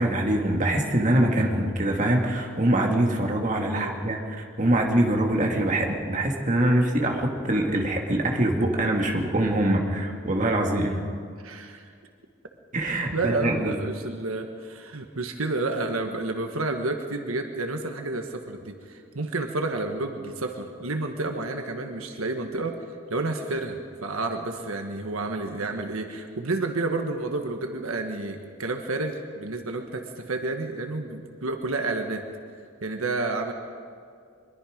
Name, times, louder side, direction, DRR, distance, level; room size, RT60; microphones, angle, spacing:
voice 1, 0.0-11.0 12.7-13.7, right 1 dB, 35° right, 1 dB, 2.2 m, -24 dB
voice 2, 3.7-4.1 11.4-11.9 13.1-22.7 23.1-32.2 32.8-33.5, right 2 dB, 80° right, 5 dB, 1.4 m, -30 dB
23.5 x 22.0 x 5.2 m, 2.2 s
head